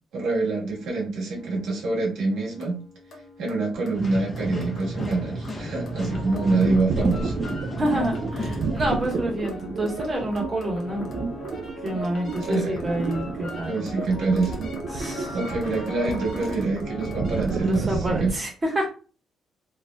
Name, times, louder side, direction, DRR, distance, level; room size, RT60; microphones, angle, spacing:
voice 1, 0.1-2.8 3.4-7.4 12.5-12.8 13.7-14.6 15.3-18.3, right 3 dB, 80° right, -3 dB, 1.3 m, -26 dB
sound 1, 0.7-18.1, left 1 dB, 60° left, 0.9 m, -40 dB
sound 2, 3.9-9.0, equal, 25° left, 0.9 m, -32 dB
sound 3, 5.7-18.3, right 4 dB, 65° right, 0.3 m, -32 dB
voice 2, 7.8-11.1 11.8-13.8 14.9-15.4 17.6-18.9, right 1 dB, 30° right, 0 dB, 1.2 m, -28 dB
2.8 x 2.6 x 2.2 m, 0.36 s
cardioid pair, 90°, 0 cm